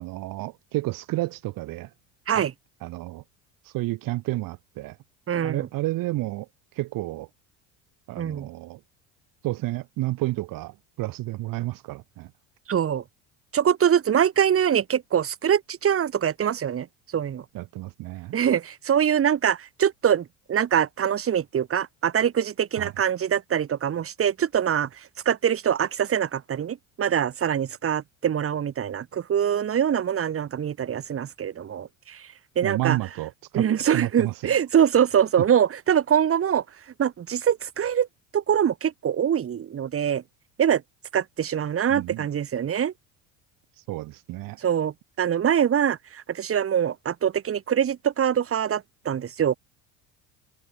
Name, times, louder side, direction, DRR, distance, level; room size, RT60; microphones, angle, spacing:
voice 1, 0.0-1.9 2.3-2.4 2.8-3.2 3.6-5.0 5.4-7.3 8.1-8.8 9.4-12.3 17.5-18.3 22.8-22.9 32.6-33.6 33.9-34.6 41.9-42.3 43.8-44.6, right 18 dB, 65° right, 2.9 m, -31 dB
voice 2, 5.3-5.7 8.2-8.5 12.7-13.0 13.5-16.9 17.1-17.4 18.3-32.3 32.6-33.0 33.5-36.6 37.0-38.1 38.3-40.2 40.6-40.8 41.1-42.9 44.6-49.5, right 9 dB, 35° right, 2.5 m, -24 dB
supercardioid pair, 95°, 37 cm